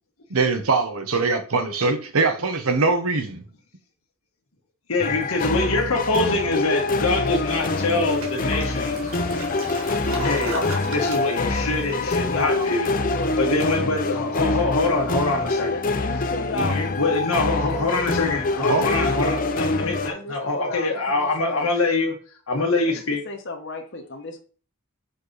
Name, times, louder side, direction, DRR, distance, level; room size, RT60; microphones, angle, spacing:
voice 1, 0.3-3.4 18.7-18.8, right 3 dB, 80° right, 0.9 m, -22 dB
voice 2, 4.9-9.1 10.2-10.5 10.9-12.9 13.4-15.8 16.5-22.2 22.5-23.2, left 2 dB, 75° left, 1.5 m, -24 dB
sound 1, 5.0-20.1, left 3 dB, 40° left, 0.6 m, -25 dB
Toilet flush, 7.5-12.8, right 2 dB, 65° right, 1.5 m, -36 dB
voice 3, 12.0-13.4 15.7-17.8 18.7-21.7 23.1-24.4, left 2 dB, 55° left, 1.1 m, -34 dB
5.4 x 4.8 x 4.0 m
head